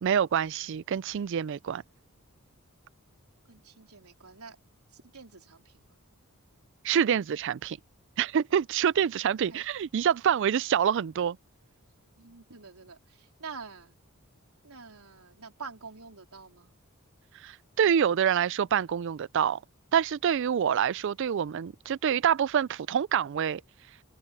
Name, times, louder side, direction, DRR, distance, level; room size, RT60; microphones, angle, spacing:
voice 1, 0.0-1.8 6.8-7.8 8.2-11.4 17.4-19.6 19.9-23.6, right 8 dB, 55° right, 0.3 m, -26 dB
voice 2, 3.5-4.6 4.9-6.0 9.5-9.6 12.2-14.0 14.6-16.7, right 5 dB, 85° right, 3.8 m, -47 dB
open air
head